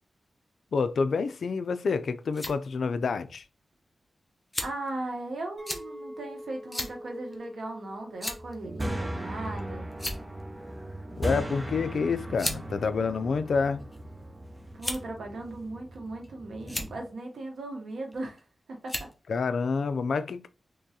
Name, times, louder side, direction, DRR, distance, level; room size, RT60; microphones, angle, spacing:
voice 1, 0.7-3.4 11.2-13.8 19.3-20.5, left 5 dB, 80° left, 0.3 m, -28 dB
sound 1, 2.0-2.6 3.4-3.5 4.5-4.9 5.7-5.8 6.7-6.9 7.3-7.4 8.2-8.5 9.4-9.6 9.9-10.4 11.5-11.7 12.4-12.6 13.5-14.0 14.8-15.2 15.9-16.3 16.6-16.9 18.1-18.4 18.9-19.1, left 1 dB, 20° left, 0.7 m, -34 dB
voice 2, 4.6-9.9 14.7-18.4 18.7-19.1, right 2 dB, 85° right, 0.9 m, -37 dB
Chink clink, 5.6-9.9 10.3-10.7, equal, 35° right, 1.4 m, -47 dB
sound 2, 8.4-17.0, right 1 dB, 20° right, 0.5 m, -38 dB
3.7 x 3.0 x 2.7 m
wide cardioid pair, 100°, 0 cm